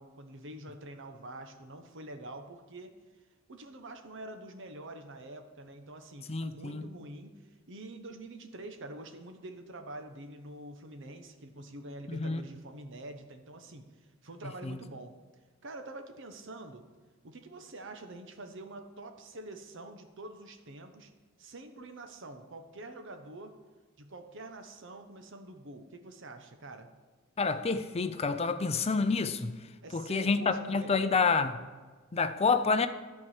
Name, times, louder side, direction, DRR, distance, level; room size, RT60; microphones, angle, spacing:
voice 1, 0.0-2.9 3.5-7.4 7.7-15.1 15.6-16.9 17.2-21.1 21.4-23.5 24.0-26.9 29.8-31.2, right 2 dB, 65° right, 1.0 m, -46 dB
voice 2, 6.3-6.9 12.1-12.4 14.4-14.8 27.4-29.6 29.9-31.6 32.1-32.9, left 4 dB, 30° left, 0.5 m, -28 dB
12.5 x 4.7 x 7.3 m
head